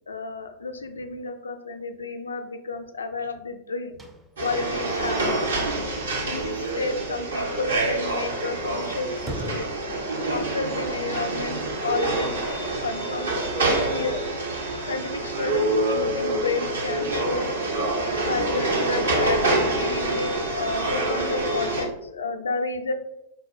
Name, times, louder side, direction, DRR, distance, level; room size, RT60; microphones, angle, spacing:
voice 1, 0.1-3.9 4.4-5.5 6.2-9.8 10.3-12.4 12.8-14.2 14.7-17.5 18.2-22.9, left 3 dB, 75° left, 7 dB, 0.3 m, -31 dB
Slam / Squeak / Wood, 3.9-7.2 7.5-7.6 7.9-8.0 8.5-9.8, equal, 10° right, 0.4 m, -42 dB
sound 1, 4.4-21.9, right 2 dB, 70° right, 0.7 m, -26 dB
4.7 x 2.0 x 3.1 m, 0.88 s
figure-of-eight pair, 90°, 0 cm